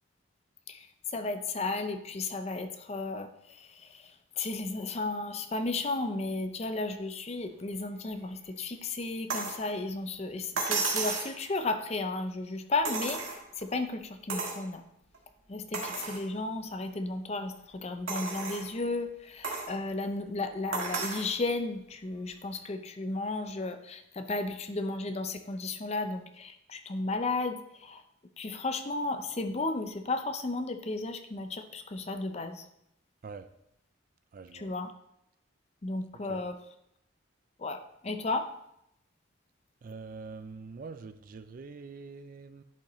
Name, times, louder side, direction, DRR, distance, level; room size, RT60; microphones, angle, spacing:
voice 1, 0.7-14.8 15.5-28.0 28.4-32.7 34.5-34.9 35.8-36.6 37.6-38.5, left 2 dB, 30° left, 8 dB, 0.5 m, -34 dB
sound 1, 9.3-9.6 10.6-11.4 12.8-13.6 14.3-14.6 15.1-15.2 15.7-16.2 16.8-16.9 18.1-18.7 19.4-19.7 20.7-21.3 22.6-22.7, right 4 dB, 85° right, 1.6 m, -33 dB
voice 2, 34.3-34.7 36.3-36.4 39.8-42.6, right 4 dB, 45° right, 12 dB, 0.3 m, -44 dB
10.5 x 5.3 x 3.1 m, 0.79 s
head